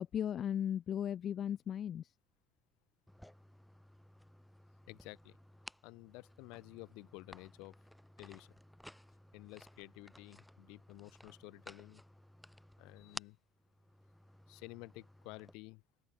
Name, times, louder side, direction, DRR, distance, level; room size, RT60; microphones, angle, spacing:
voice 1, 0.0-2.0, left 9 dB, 35° left, 0.6 m, -36 dB
sound 1, 3.1-15.5, left 1 dB, ahead, 6.1 m, -56 dB
voice 2, 4.9-5.4 5.8-7.7 8.2-8.6 9.3-12.0 12.8-13.4 14.5-15.8, left 26 dB, 80° left, 3.4 m, -52 dB
open air
cardioid pair, 160°, 0 cm